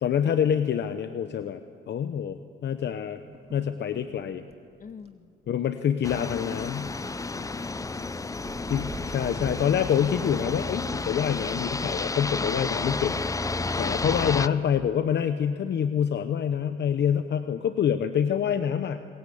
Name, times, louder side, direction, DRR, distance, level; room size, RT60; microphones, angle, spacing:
voice 1, 0.0-1.6 1.9-3.2 3.5-4.4 5.5-7.0 8.7-13.2 13.5-19.1, left 8 dB, 60° left, 9 dB, 1.0 m, -26 dB
sound 1, 3.2-4.2 4.5-4.6 4.9-5.1 6.3-7.3 7.8-10.1, right 4 dB, 30° right, 2.3 m, -45 dB
voice 2, 4.8-5.4 7.3-9.3, left 5 dB, 45° left, 10 dB, 1.6 m, -47 dB
sound 2, 6.0-14.5, left 3 dB, 15° left, 0.7 m, -31 dB
27.5 x 20.5 x 8.6 m, 2.2 s
cardioid pair, 90°, 20 cm